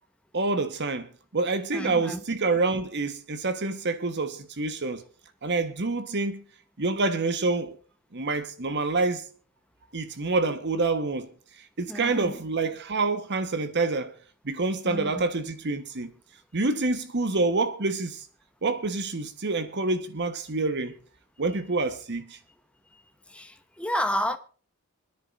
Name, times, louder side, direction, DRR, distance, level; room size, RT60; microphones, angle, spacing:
voice 1, 0.3-5.0 5.4-6.4 6.8-7.8 8.1-9.3 9.9-11.3 11.6-14.1 14.4-16.1 16.5-18.3 18.6-20.9 21.4-22.4, right 3 dB, 55° right, 1.2 m, -27 dB
voice 2, 1.7-2.2 11.9-12.3 14.8-15.1 23.3-24.4, equal, 5° left, 0.9 m, -30 dB
26.5 x 10.5 x 2.5 m
head